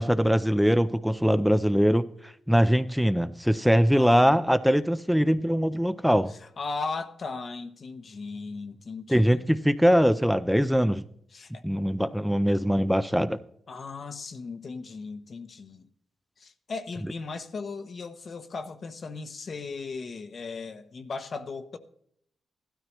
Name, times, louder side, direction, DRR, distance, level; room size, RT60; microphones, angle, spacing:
voice 1, 0.0-6.3 9.1-11.0 11.6-13.4, equal, ahead, 0.5 m, -22 dB
voice 2, 3.9-4.4 6.3-9.4 11.3-11.6 13.7-15.9 16.4-21.8, left 4 dB, 50° left, 0.9 m, -37 dB
16.5 x 12.5 x 3.1 m
cardioid pair, 105°, 0 cm